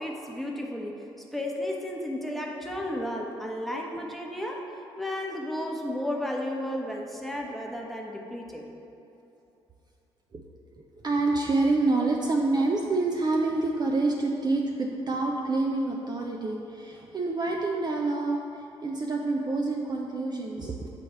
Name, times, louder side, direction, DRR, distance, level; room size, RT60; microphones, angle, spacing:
voice 1, 0.0-4.6 5.0-8.6, left 1 dB, ahead, -1 dB, 1.0 m, -33 dB
voice 2, 10.8-20.9, right 3 dB, 30° right, 1 dB, 0.5 m, -27 dB
8.4 x 3.2 x 4.4 m, 2.9 s
hypercardioid pair, 45°, 13 cm